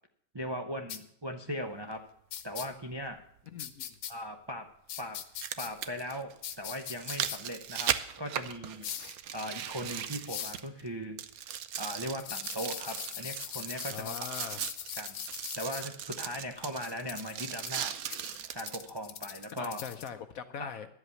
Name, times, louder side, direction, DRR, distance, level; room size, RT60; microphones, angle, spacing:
voice 1, 0.3-2.0 2.4-3.2 4.1-4.7 5.0-5.2 5.6-8.8 9.3-11.2 11.8-14.1 15.0-15.2 15.5-17.9 18.5-19.8 20.6-20.7, equal, 40° right, 4 dB, 0.3 m, -39 dB
sound 1, 0.9-1.0 2.3-2.7 3.6-4.1 4.9-5.7 6.4-7.4 8.8-9.1 10.3-10.6 12.2-15.8 16.8-20.1, left 9 dB, 90° left, 1.6 m, -41 dB
sound 2, 1.9-2.0 3.9-4.0 5.1-10.9 11.2-18.9 19.4-19.5, right 10 dB, 65° right, 1.0 m, -38 dB
voice 2, 3.5-3.9 13.9-14.6 19.5-20.9, left 7 dB, 65° left, 9 dB, 0.9 m, -41 dB
12.0 x 8.1 x 7.0 m, 0.69 s
omnidirectional pair, 1.9 m